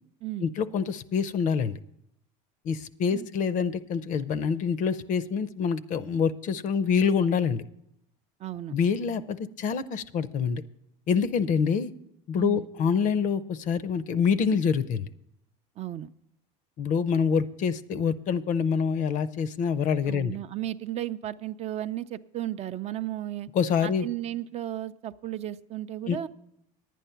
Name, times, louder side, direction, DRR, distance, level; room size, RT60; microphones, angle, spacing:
voice 1, 0.4-1.8 2.6-7.6 8.7-10.6 11.1-11.9 12.3-15.1 16.8-20.4 23.5-24.1 26.1-26.3, left 6 dB, 45° left, 15 dB, 0.6 m, -26 dB
voice 2, 8.4-8.8 12.4-12.7 15.8-16.1 20.1-23.5 23.8-26.3, right 12 dB, 40° right, 11 dB, 0.4 m, -34 dB
10.5 x 9.2 x 5.7 m, 0.79 s
supercardioid pair, 110°, 18 cm